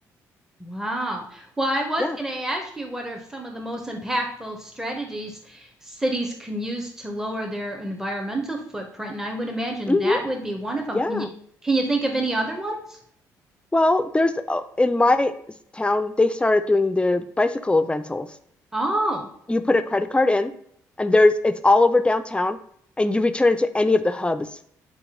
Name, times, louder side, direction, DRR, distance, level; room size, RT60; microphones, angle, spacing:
voice 1, 0.6-11.2 11.6-13.0 18.7-19.3, right 1 dB, 5° right, 1 dB, 0.8 m, -28 dB
voice 2, 9.9-10.2 10.9-11.3 13.7-15.3 15.7-18.3 19.5-20.5 21.0-22.6 23.0-24.5, left 2 dB, 15° left, 11 dB, 0.4 m, -20 dB
4.0 x 2.9 x 3.7 m, 0.65 s
supercardioid pair, 60°, 8 cm